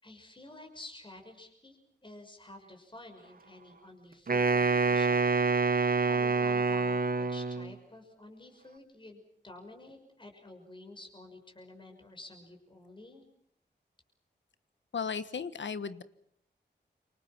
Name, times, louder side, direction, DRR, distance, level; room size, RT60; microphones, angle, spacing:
voice 1, 0.0-5.3 6.0-13.2, left 1 dB, 25° left, 3 dB, 6.1 m, -50 dB
Wind instrument woodwind instrument, 4.3-7.8, right 4 dB, 50° right, 1.4 m, -27 dB
voice 2, 14.9-16.0, left 6 dB, 80° left, 13 dB, 1.4 m, -35 dB
28.5 x 25.5 x 6.1 m, 0.69 s
wide cardioid pair, 70°, 19 cm